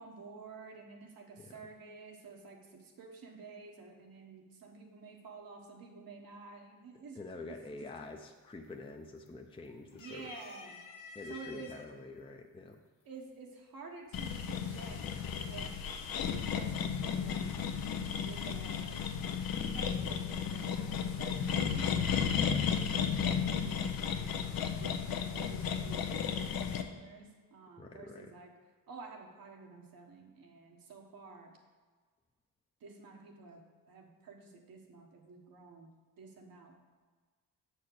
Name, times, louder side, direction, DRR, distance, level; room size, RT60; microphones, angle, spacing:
voice 1, 0.0-8.1 9.9-10.8 11.3-11.8 13.0-15.8 16.2-17.6 18.2-19.0 19.6-21.9 22.5-24.3 24.7-28.5 28.9-31.5 32.8-33.6 33.9-35.9 36.2-36.8, right 4 dB, 85° right, 1 dB, 1.4 m, -51 dB
voice 2, 7.2-10.3 11.1-12.8 27.8-28.3, left 3 dB, 15° left, 3 dB, 0.5 m, -47 dB
sound 1, 8.1-8.5 8.8-9.5 9.9-11.8 12.7-12.8 14.0-14.5, left 4 dB, 60° left, 1.4 m, -50 dB
sound 2, 14.1-26.8, left 7 dB, 85° left, 0.7 m, -34 dB
7.2 x 4.4 x 6.5 m, 1.4 s
cardioid pair, 100°, 34 cm